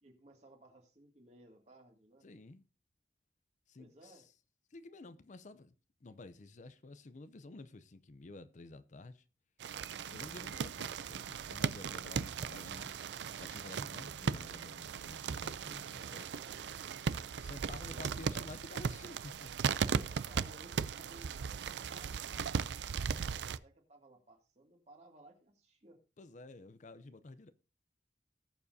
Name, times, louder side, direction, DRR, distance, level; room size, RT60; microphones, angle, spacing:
voice 1, 0.0-2.3 3.8-4.3 16.0-17.2 17.8-18.3 19.8-26.0, right 1 dB, 40° right, 2.2 m, -60 dB
voice 2, 2.2-2.6 3.7-4.3 4.7-5.7 6.0-9.2 10.1-16.3 17.4-19.5 19.9-20.1 26.2-27.5, left 2 dB, 45° left, 0.6 m, -51 dB
sound 1, 9.6-23.6, right 6 dB, 75° right, 0.4 m, -37 dB
19.0 x 7.1 x 2.7 m
head